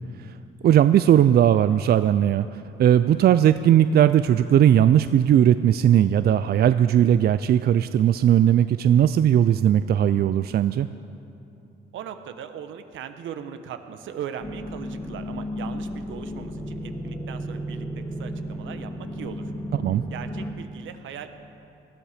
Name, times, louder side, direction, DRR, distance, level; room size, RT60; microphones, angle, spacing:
voice 1, 0.6-10.9 19.7-20.0, right 10 dB, 55° right, 12 dB, 0.4 m, -18 dB
voice 2, 11.9-19.5 20.1-21.3, right 8 dB, 75° right, 9 dB, 1.1 m, -39 dB
sound 1, 14.4-20.5, equal, 15° left, 1.9 m, -33 dB
19.5 x 13.0 x 5.0 m, 2.8 s
cardioid pair, 90°, 20 cm